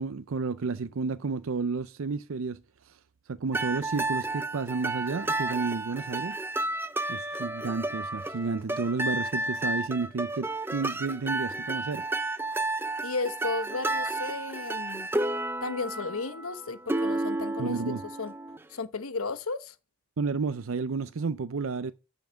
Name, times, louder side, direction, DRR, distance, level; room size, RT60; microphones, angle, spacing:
voice 1, 0.0-2.6 2.9-3.0 3.3-6.4 7.1-12.0 17.6-18.0 20.2-21.9, right 4 dB, 70° right, 0.5 m, -31 dB
sound 1, 3.5-18.6, right 2 dB, 10° right, 0.5 m, -32 dB
voice 2, 13.0-15.1 15.6-18.3 18.7-19.7, left 3 dB, 85° left, 1.1 m, -34 dB
10.5 x 5.8 x 6.3 m
head